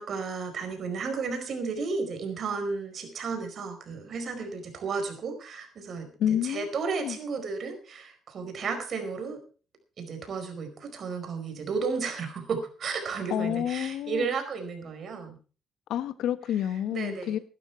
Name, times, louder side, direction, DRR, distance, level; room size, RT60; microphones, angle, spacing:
voice 1, 0.0-9.4 10.0-15.4 16.9-17.4, right 4 dB, 55° right, 4.7 m, -33 dB
voice 2, 6.2-7.2 13.3-14.3 15.9-17.4, left 10 dB, 85° left, 1.1 m, -29 dB
16.0 x 11.5 x 4.6 m
cardioid pair, 90°, 0 cm